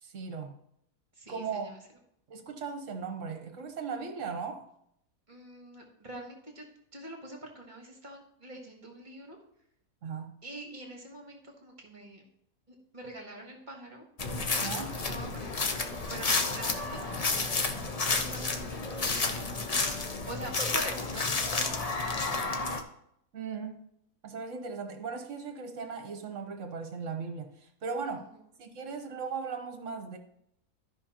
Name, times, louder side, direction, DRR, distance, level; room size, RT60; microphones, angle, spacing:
voice 1, 0.0-0.6 1.3-1.7 2.3-4.7 10.0-10.3 14.6-14.9 23.3-23.8 24.2-28.3 28.6-30.2, right 5 dB, 55° right, 6 dB, 1.3 m, -37 dB
voice 2, 5.3-6.6 6.9-9.4 10.4-12.2 12.7-14.1 14.6-17.3 18.0-19.6 20.2-22.5 28.2-28.3, right 1 dB, 30° right, 1 dB, 1.6 m, -45 dB
sound 1, 14.2-22.8, left 3 dB, 45° left, 0.5 m, -31 dB
13.5 x 5.6 x 2.9 m, 0.74 s
omnidirectional pair, 1.6 m